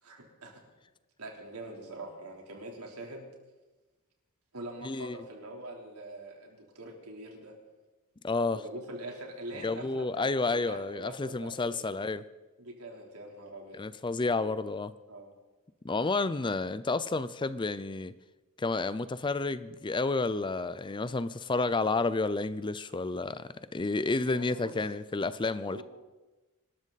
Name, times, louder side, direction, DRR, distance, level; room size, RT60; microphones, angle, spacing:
voice 1, 0.0-0.6 1.2-3.3 4.5-7.5 8.5-12.0 12.6-13.9 15.1-15.3 24.3-24.7 25.7-25.8, right 1 dB, 85° right, 3.6 m, -44 dB
voice 2, 4.8-5.2 8.2-8.6 9.6-12.2 13.7-14.9 15.8-18.1 18.6-25.8, left 3 dB, 20° left, 0.5 m, -30 dB
25.5 x 13.0 x 4.1 m
head